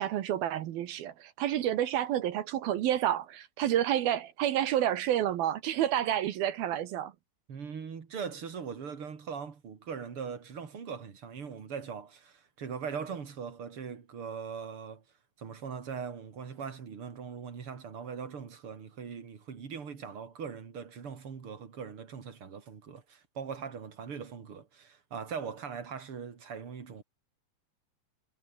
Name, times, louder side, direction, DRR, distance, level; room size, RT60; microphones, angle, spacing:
voice 1, 0.0-7.1, right 11 dB, 65° right, 2.7 m, -29 dB
voice 2, 7.5-15.0 15.4-27.0, right 6 dB, 35° right, 2.7 m, -40 dB
omnidirectional pair, 5.3 m